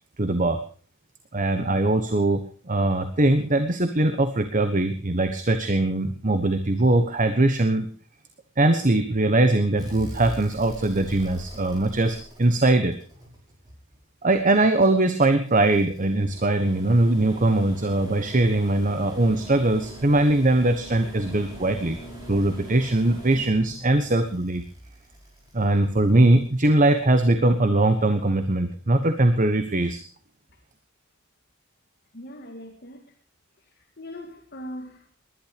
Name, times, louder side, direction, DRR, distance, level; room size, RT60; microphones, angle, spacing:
voice 1, 0.2-0.6 1.3-7.9 8.6-13.0 14.2-22.0 22.3-24.6 25.5-30.0, right 2 dB, 40° right, 1.2 m, -21 dB
sound 1, 9.8-14.0 15.2-26.4 28.0-28.1, equal, 20° right, 6.4 m, -42 dB
voice 2, 32.1-33.1 34.0-35.2, equal, 50° left, 2.2 m, -40 dB
19.5 x 12.0 x 5.1 m
head